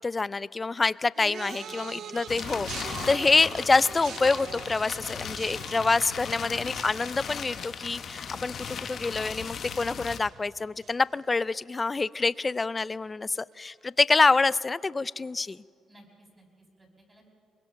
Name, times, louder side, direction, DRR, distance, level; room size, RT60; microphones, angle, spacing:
voice 1, 0.0-8.5 8.9-15.6, left 3 dB, 25° left, 20 dB, 0.4 m, -26 dB
sound 1, 1.2-10.5 10.8-11.3 12.2-12.3, right 8 dB, 65° right, 0.6 m, -44 dB
voice 2, 1.5-2.2 15.9-17.3, right 1 dB, 20° right, 0 dB, 6.0 m, -56 dB
sound 2, 2.3-10.2, left 7 dB, 55° left, 1.2 m, -37 dB
22.5 x 21.5 x 5.8 m, 2.4 s
cardioid pair, 90°, 0 cm